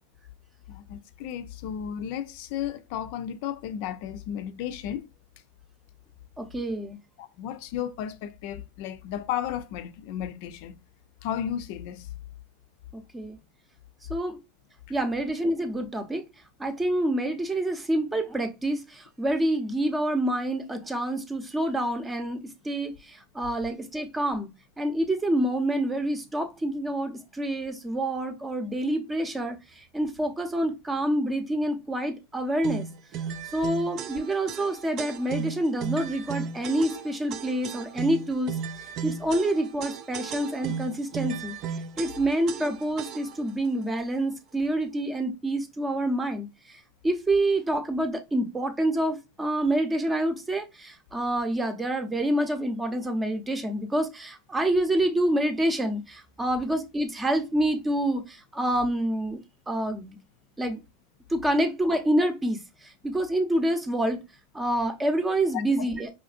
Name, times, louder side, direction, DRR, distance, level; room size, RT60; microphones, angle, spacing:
voice 1, 0.7-5.0 7.2-10.7 11.2-12.1 65.5-65.6, left 10 dB, 60° left, 0.5 m, -33 dB
voice 2, 6.4-7.0 13.1-13.4 14.1-14.4 14.9-16.2 16.6-24.5 24.8-29.6 29.9-32.9 33.5-38.6 39.0-41.5 42.0-46.8 47.0-59.4 59.7-60.2 60.6-60.8 61.3-62.6 63.0-64.2 64.5-66.1, right 1 dB, 15° right, 0.8 m, -27 dB
sound 1, 32.6-43.5, right 7 dB, 45° right, 0.4 m, -35 dB
4.9 x 2.6 x 2.5 m
supercardioid pair, 120°, 0 cm